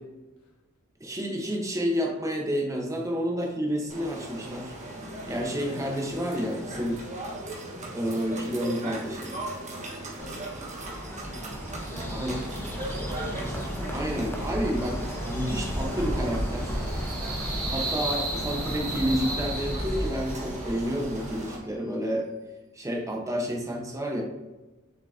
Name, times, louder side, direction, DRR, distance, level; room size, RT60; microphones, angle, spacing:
voice 1, 1.0-4.7 5.3-7.0 7.9-9.4 12.1-12.4 13.9-16.8 17.7-22.3 22.7-24.2, equal, 15° right, 0 dB, 1.1 m, -30 dB
sound 1, 3.9-21.6, right 1 dB, 35° right, 1.4 m, -39 dB
voice 2, 10.2-12.6, left 1 dB, 85° left, -2 dB, 1.3 m, -47 dB
Bird, 10.2-21.6, equal, 10° left, 0.9 m, -34 dB
sound 2, 15.6-20.4, right 2 dB, 80° right, 2.2 m, -36 dB
6.9 x 6.1 x 2.8 m, 1.1 s
head